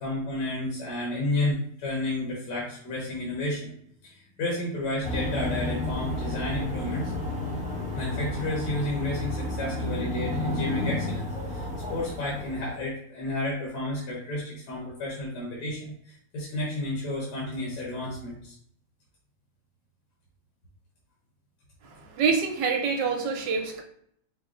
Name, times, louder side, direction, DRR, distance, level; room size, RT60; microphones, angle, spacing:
voice 1, 0.0-3.7 4.0-7.1 7.9-18.5, left 2 dB, 60° left, -5 dB, 1.6 m, -31 dB
sound 1, 5.0-12.8, left 1 dB, 10° right, 0.3 m, -31 dB
voice 2, 21.8-23.8, right 5 dB, 75° right, 2 dB, 1.4 m, -26 dB
5.0 x 2.1 x 3.8 m, 0.66 s
omnidirectional pair, 2.0 m